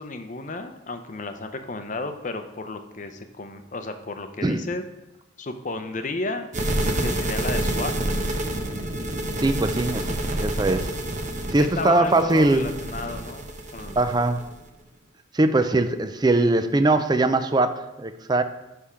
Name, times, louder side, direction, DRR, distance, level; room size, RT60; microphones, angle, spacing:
voice 1, 0.0-4.8 5.4-6.5 7.0-7.9 11.6-14.0, left 3 dB, 40° left, 8 dB, 0.6 m, -33 dB
sound 1, 6.5-14.6, right 1 dB, 40° right, 0.8 m, -28 dB
voice 2, 6.8-7.2 9.4-11.0 11.5-12.7 14.0-14.4 15.3-18.4, right 2 dB, 20° right, 10 dB, 0.4 m, -21 dB
9.7 x 3.5 x 5.6 m, 0.98 s
head